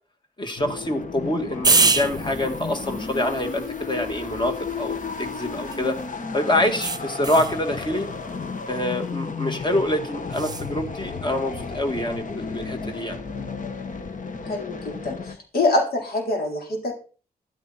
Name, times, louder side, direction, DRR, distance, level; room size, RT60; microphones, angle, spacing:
voice 1, 0.4-6.0 6.3-8.1 8.7-13.2, left 1 dB, 30° left, 5 dB, 2.4 m, -26 dB
sound 1, 0.6-15.4, left 4 dB, 55° left, 1.6 m, -33 dB
sound 2, 1.6-6.0 6.8-7.6 10.3-10.7, right 3 dB, 25° right, 0.9 m, -26 dB
voice 2, 14.4-16.9, left 2 dB, 80° left, 1 dB, 4.0 m, -25 dB
13.5 x 11.5 x 4.4 m, 0.38 s
wide cardioid pair, 95°, 16 cm